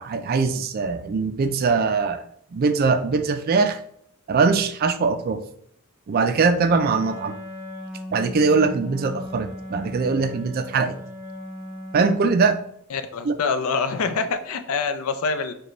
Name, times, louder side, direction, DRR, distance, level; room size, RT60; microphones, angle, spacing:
voice 1, 0.0-2.2 2.5-3.8 4.3-5.4 6.1-7.3 8.1-11.0 11.9-12.6 13.3-13.4, right 4 dB, 45° right, 10 dB, 0.3 m, -21 dB
Wind instrument woodwind instrument, 6.6-12.7, left 1 dB, 45° left, 0.9 m, -37 dB
voice 2, 12.9-15.5, left 5 dB, 85° left, 10 dB, 0.4 m, -25 dB
4.9 x 2.2 x 3.1 m, 0.67 s
head